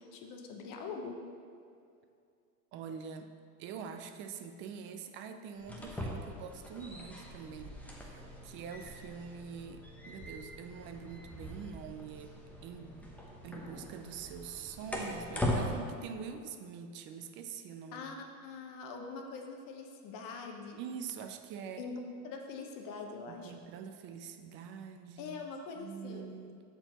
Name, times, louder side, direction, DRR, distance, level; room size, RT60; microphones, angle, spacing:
voice 1, 0.1-1.1 17.9-18.2 18.4-20.8 21.8-23.5 25.2-26.3, left 4 dB, 40° left, 3 dB, 0.9 m, -43 dB
voice 2, 2.7-3.3 3.6-12.4 12.6-13.1 13.4-18.1 20.8-21.8 23.3-25.4 25.8-26.6, right 6 dB, 25° right, 7 dB, 0.3 m, -45 dB
sound 1, 5.6-15.7, left 1 dB, 5° left, 0.8 m, -41 dB
13.0 x 4.5 x 2.9 m, 2.4 s
hypercardioid pair, 115°, 48 cm